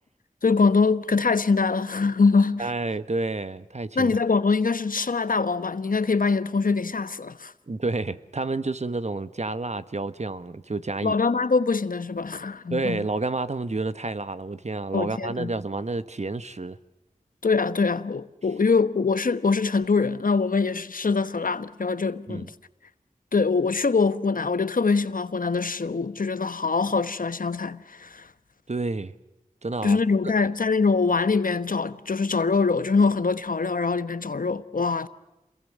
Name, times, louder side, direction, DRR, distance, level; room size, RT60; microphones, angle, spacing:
voice 1, 0.4-2.7 4.0-7.5 11.0-13.0 14.9-15.6 17.4-22.5 23.3-28.3 29.8-35.1, left 4 dB, 85° left, 1.1 m, -23 dB
voice 2, 2.6-4.2 7.7-11.1 12.7-16.8 22.3-22.5 28.7-29.1 29.6-30.0, right 3 dB, 55° right, 1.3 m, -29 dB
28.0 x 22.5 x 6.8 m
wide cardioid pair, 40°, 14 cm